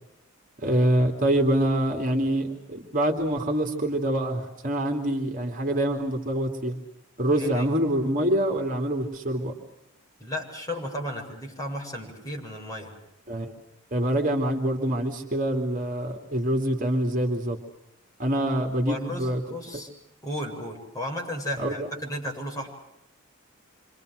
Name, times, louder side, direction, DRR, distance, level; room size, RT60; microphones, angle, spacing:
voice 1, 0.6-6.8 7.2-9.6 13.3-13.5 13.9-17.6 18.2-19.4 19.7-19.8 21.6-21.9, right 1 dB, 40° right, 3 dB, 3.0 m, -25 dB
voice 2, 7.3-7.7 10.2-12.9 18.7-19.9 20.2-22.7, left 1 dB, 15° left, -1 dB, 7.8 m, -34 dB
28.5 x 26.0 x 6.6 m, 0.81 s
head